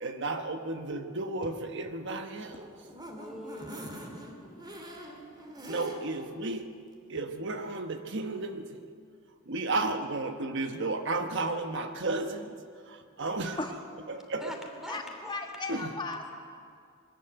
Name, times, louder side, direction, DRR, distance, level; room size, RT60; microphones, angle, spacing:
voice 1, 0.0-2.7 5.7-6.7 7.1-8.9 9.5-12.5 12.9-13.6 14.1-14.6 15.7-15.9, right 2 dB, 60° right, 7 dB, 1.1 m, -33 dB
sound 1, 2.3-6.3 6.7-6.8 7.1-7.2, equal, 20° right, 2.4 m, -44 dB
voice 2, 3.2-4.7 14.4-15.4 15.7-15.8, equal, ahead, 2 dB, 2.9 m, -44 dB
voice 3, 14.9-16.3, left 3 dB, 25° left, 2 dB, 1.7 m, -36 dB
22.5 x 13.5 x 9.1 m, 2.2 s
head